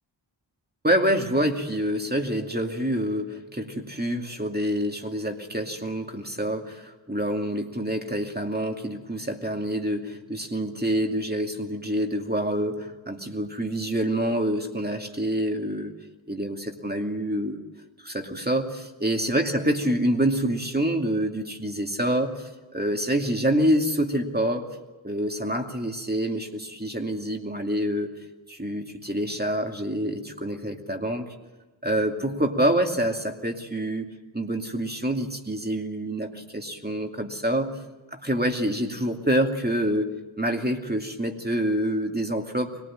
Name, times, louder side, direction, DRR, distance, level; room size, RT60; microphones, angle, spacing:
voice 1, 0.8-15.9 16.3-17.6 18.0-24.8 25.0-28.1 28.5-31.3 31.8-37.7 38.1-42.8, right 1 dB, 20° right, 3 dB, 2.5 m, -27 dB
24.5 x 19.0 x 8.9 m, 1.2 s
wide cardioid pair, 50°, 45 cm